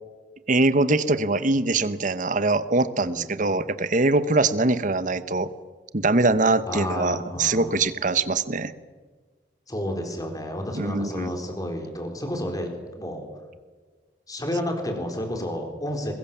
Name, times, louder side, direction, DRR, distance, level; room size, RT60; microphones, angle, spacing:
voice 1, 0.5-5.5 5.9-8.7 10.7-11.3, right 2 dB, 50° right, 14 dB, 1.1 m, -23 dB
voice 2, 3.0-3.3 6.6-7.8 9.7-13.3 14.3-16.1, left 1 dB, 20° left, 4 dB, 4.0 m, -31 dB
22.5 x 21.5 x 7.4 m, 1.4 s
head